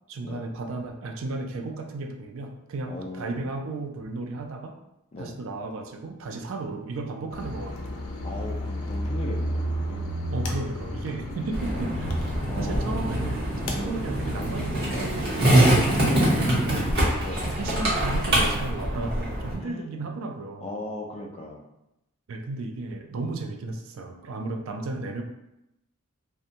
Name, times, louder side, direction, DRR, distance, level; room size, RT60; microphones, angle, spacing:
voice 1, 0.1-4.7 5.2-7.9 10.3-12.1 12.5-16.8 17.4-20.7 22.3-25.2, right 3 dB, 60° right, 3 dB, 0.4 m, -34 dB
voice 2, 2.9-3.5 5.1-5.4 8.2-10.0 11.7-11.9 12.5-13.1 13.8-14.1 16.3-16.6 17.2-17.5 19.6-19.9 20.6-21.6, left 1 dB, 30° left, 1 dB, 0.3 m, -38 dB
sound 1, 7.3-14.8, equal, 85° left, 0.5 m, -32 dB
Skateboard, 11.5-19.5, right 1 dB, 45° right, 0.9 m, -24 dB
2.8 x 2.2 x 2.5 m, 0.88 s
head